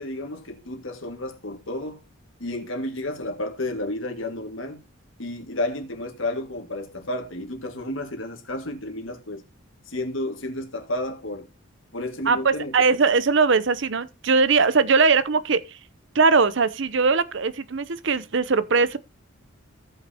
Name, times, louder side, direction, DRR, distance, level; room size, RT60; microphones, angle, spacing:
voice 1, 0.0-2.0 2.4-4.8 5.2-9.4 9.9-11.5 11.9-12.7, left 1 dB, 70° left, 2.0 m, -31 dB
voice 2, 12.3-15.8 16.1-19.0, right 4 dB, 60° right, 0.7 m, -20 dB
17.0 x 5.7 x 2.8 m
head